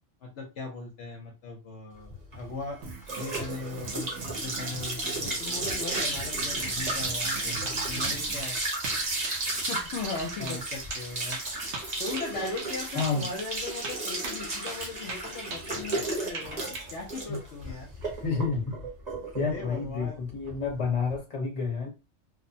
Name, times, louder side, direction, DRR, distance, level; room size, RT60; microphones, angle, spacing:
voice 1, 0.2-2.8 3.1-8.6 9.7-11.4 12.0-17.9 19.5-20.2, left 3 dB, 65° left, 0 dB, 0.9 m, -38 dB
sound 1, 2.1-21.1, right 2 dB, 35° right, 0.9 m, -33 dB
Drum kit, 2.8-8.4, right 4 dB, 85° right, 1.1 m, -42 dB
sound 2, 7.3-7.4 7.6-8.2 8.4-8.5 8.8-9.4 9.6-9.8 10.1-10.2 10.5-10.6 10.9-12.7 13.0-13.1 13.4-13.5 13.8-14.4 14.7-14.8 15.1-16.1 16.3-16.9, right 3 dB, 65° right, 0.9 m, -39 dB
voice 2, 12.9-13.3 17.3-17.4 18.2-18.8 19.3-21.9, left 4 dB, 30° left, 0 dB, 0.9 m, -29 dB
2.9 x 2.0 x 2.6 m, 0.27 s
omnidirectional pair, 1.4 m